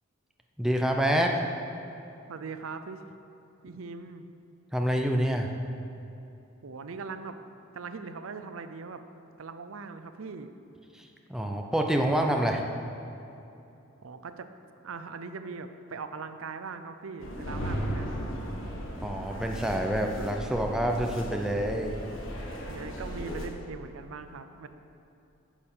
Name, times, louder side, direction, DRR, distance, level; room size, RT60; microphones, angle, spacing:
voice 1, 0.6-1.4 4.7-5.5 11.3-12.6 19.0-22.0, right 1 dB, 5° right, 2 dB, 0.6 m, -27 dB
voice 2, 2.3-3.0 3.6-4.2 6.6-7.4 7.7-9.0 9.4-10.5 14.0-14.5 14.8-18.1 22.7-24.7, right 4 dB, 80° right, 9 dB, 0.5 m, -40 dB
sound 1, 17.2-23.5, equal, 70° left, 1.3 m, -36 dB
10.0 x 6.9 x 5.5 m, 2.8 s
head